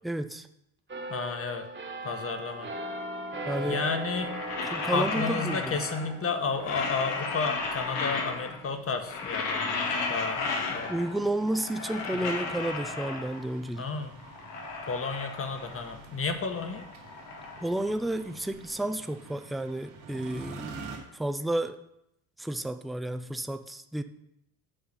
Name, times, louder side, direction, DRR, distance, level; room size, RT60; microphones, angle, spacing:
voice 1, 0.0-0.5 3.5-3.8 4.6-5.8 10.9-13.9 17.6-21.8 22.4-24.0, right 1 dB, ahead, 9 dB, 0.4 m, -31 dB
sound 1, 0.9-12.4 12.9-13.1, right 1 dB, 25° right, 1.6 m, -41 dB
voice 2, 1.1-1.7 2.0-2.7 3.6-4.4 4.9-10.9 12.1-12.3 13.8-14.1 14.9-16.8, left 4 dB, 30° left, 6 dB, 1.3 m, -32 dB
sound 2, 4.0-6.2 6.5-8.7 9.0-11.2 11.5-13.6 14.0-16.0 16.3-18.5, left 4 dB, 85° left, 1.6 m, -34 dB
sound 3, 9.8-21.0, right 4 dB, 90° right, 2.4 m, -48 dB
8.8 x 3.8 x 6.6 m, 0.79 s
supercardioid pair, 80°, 45 cm